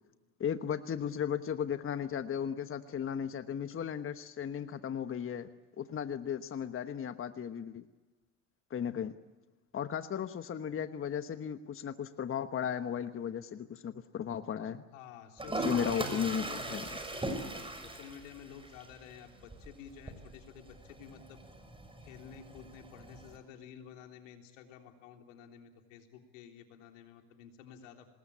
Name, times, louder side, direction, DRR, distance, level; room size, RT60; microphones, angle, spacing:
voice 1, 0.4-5.5 5.8-7.8 8.7-9.2 9.7-14.8 15.6-16.8, left 8 dB, 35° left, 10 dB, 1.2 m, -35 dB
voice 2, 14.9-21.4 22.0-28.1, left 8 dB, 80° left, 4 dB, 3.5 m, -51 dB
Toilet flush, 15.4-23.4, right 2 dB, 15° right, 6.3 m, -41 dB
26.0 x 20.5 x 8.5 m, 1.2 s
hypercardioid pair, 75°, 37 cm